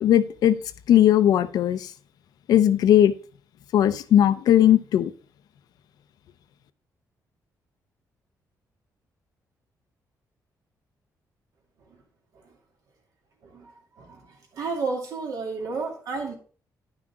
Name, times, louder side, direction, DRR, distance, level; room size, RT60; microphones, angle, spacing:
voice 1, 0.0-0.6 0.9-1.9 2.5-3.1 3.7-5.1, left 11 dB, 75° left, 12 dB, 0.6 m, -18 dB
voice 2, 14.0-16.3, right 4 dB, 65° right, 1 dB, 2.5 m, -32 dB
10.5 x 6.0 x 3.7 m, 0.39 s
cardioid pair, 160°, 7 cm